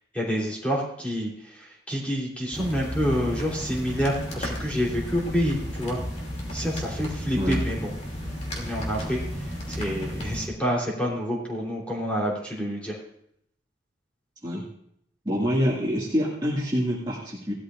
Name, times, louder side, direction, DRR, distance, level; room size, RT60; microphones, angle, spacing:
voice 1, 0.1-6.0 6.5-7.9 8.2-9.2 9.7-13.0, equal, 5° left, -4 dB, 3.3 m, -28 dB
sound 1, 2.5-10.5, equal, 35° left, 2.6 m, -33 dB
voice 2, 15.2-17.5, equal, 20° right, -6 dB, 2.1 m, -26 dB
17.5 x 12.5 x 2.5 m, 0.72 s
head